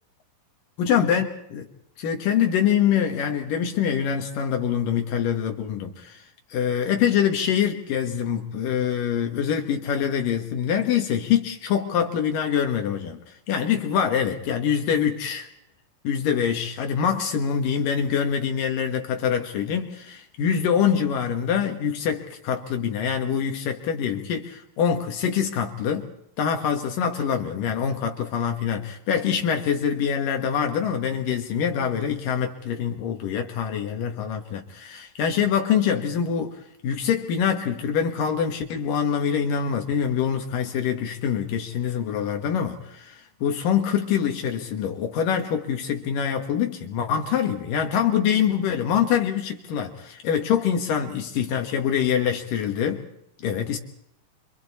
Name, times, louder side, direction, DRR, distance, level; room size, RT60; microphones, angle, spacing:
voice 1, 0.8-1.7 2.0-6.2 6.5-13.2 13.5-15.5 16.0-26.1 26.4-53.0 53.4-53.8, left 8 dB, 70° left, 3.0 m, -25 dB
29.5 x 25.5 x 4.2 m
omnidirectional pair, 4.1 m